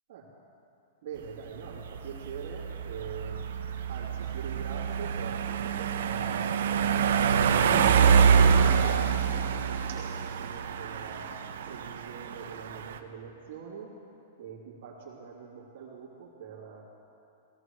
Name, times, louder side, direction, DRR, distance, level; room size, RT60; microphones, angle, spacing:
voice 1, 1.0-3.4 3.9-8.1 8.5-11.3 11.6-13.9 14.4-16.8, right 6 dB, 50° right, -5 dB, 2.9 m, -43 dB
sound 1, 1.3-13.0, right 7 dB, 70° right, 0.8 m, -26 dB
21.5 x 16.0 x 3.2 m, 2.7 s
supercardioid pair, 175°, 0 cm